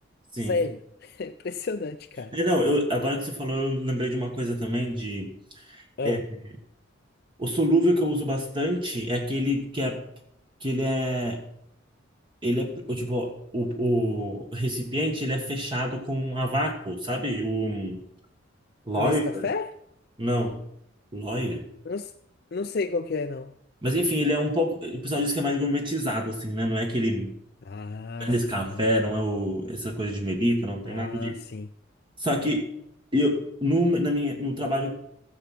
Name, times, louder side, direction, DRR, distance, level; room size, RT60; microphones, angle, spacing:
voice 1, 0.4-2.3 6.0-6.2 19.0-19.7 21.9-22.1 22.5-23.5 27.6-28.3 28.7-28.8 30.9-31.7, left 4 dB, 50° left, 0.5 m, -31 dB
voice 2, 2.3-6.2 7.4-10.0 10.6-11.4 12.4-18.0 18.9-19.5 20.2-20.6 21.1-21.6 23.8-27.3 28.2-31.4 32.2-32.7 33.1-34.9, equal, 25° right, 1.5 m, -26 dB
16.5 x 7.3 x 5.9 m
head